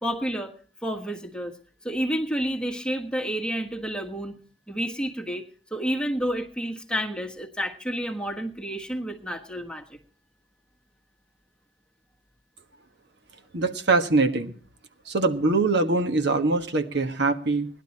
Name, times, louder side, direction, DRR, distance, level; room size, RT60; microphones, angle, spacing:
voice 1, 0.0-0.5 0.8-1.5 1.8-4.4 4.7-5.4 5.7-10.0, equal, 5° left, 3 dB, 1.5 m, -30 dB
voice 2, 13.5-14.5 15.1-17.7, right 3 dB, 65° right, 5 dB, 1.5 m, -23 dB
18.5 x 11.5 x 4.2 m, 0.42 s
head